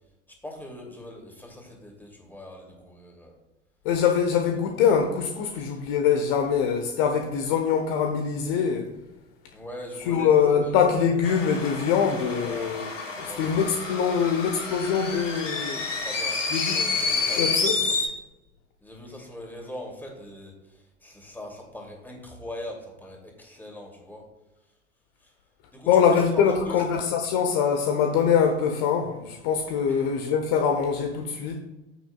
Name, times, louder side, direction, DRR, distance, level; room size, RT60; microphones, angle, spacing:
voice 1, 0.4-3.4 5.6-5.8 9.5-10.7 12.4-12.7 13.2-13.9 15.9-16.4 16.7-18.1 18.8-24.2 25.2-25.3 25.7-26.9 29.9-30.1, left 1 dB, 5° left, 2.7 m, -41 dB
voice 2, 3.8-8.9 10.1-12.9 13.2-15.8 16.5-16.8 17.4-17.7 25.9-31.6, left 7 dB, 50° left, 1.1 m, -23 dB
sound 1, 11.2-18.1, left 4 dB, 85° left, 1.6 m, -29 dB
14.5 x 6.3 x 2.4 m
figure-of-eight pair, 80°, 37 cm